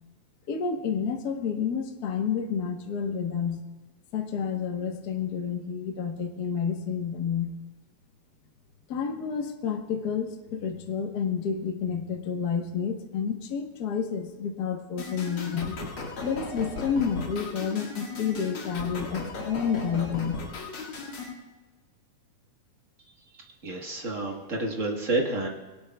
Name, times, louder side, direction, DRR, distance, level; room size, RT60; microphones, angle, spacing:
voice 1, 0.5-3.6 4.1-7.5 8.9-15.8 16.2-20.4, left 7 dB, 90° left, 3 dB, 0.8 m, -30 dB
sound 1, 15.0-21.3, left 3 dB, 45° left, 2.3 m, -36 dB
voice 2, 23.6-25.5, right 2 dB, 55° right, 0 dB, 0.8 m, -29 dB
22.5 x 18.0 x 2.3 m, 1.3 s
omnidirectional pair, 3.6 m